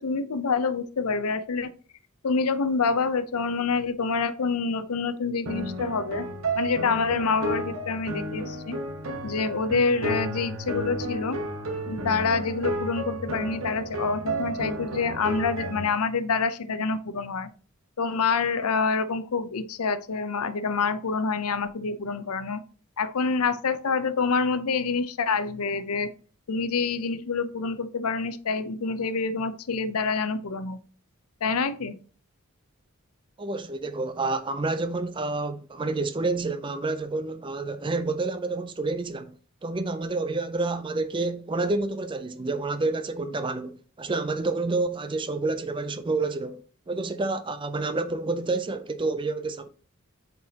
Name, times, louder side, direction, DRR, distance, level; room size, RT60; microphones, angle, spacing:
voice 1, 0.0-1.7 2.2-6.3 6.6-8.8 9.2-11.4 11.9-17.5 18.0-22.6 23.0-26.1 26.5-30.8 31.4-31.9, left 4 dB, 85° left, 0.6 m, -27 dB
sound 1, 5.5-15.9, right 1 dB, 70° right, 1.0 m, -32 dB
voice 2, 33.4-49.7, right 3 dB, 20° right, 0.4 m, -29 dB
7.9 x 4.7 x 2.8 m
head